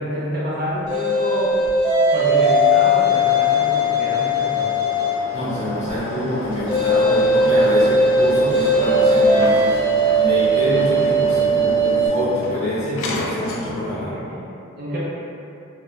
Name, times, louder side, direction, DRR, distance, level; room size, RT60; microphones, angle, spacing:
voice 1, 0.0-1.6 2.1-4.7 7.5-7.7 14.0-14.5 14.8-15.0, equal, 45° right, -8 dB, 0.5 m, -28 dB
sound 1, 0.9-5.3 6.7-12.1, equal, 20° right, 0.9 m, -18 dB
sound 2, 2.3-14.0, left 1 dB, 70° left, 0.3 m, -32 dB
voice 2, 5.3-9.8 10.2-14.1, equal, 35° left, -11 dB, 0.8 m, -25 dB
2.2 x 2.1 x 2.9 m, 2.7 s
head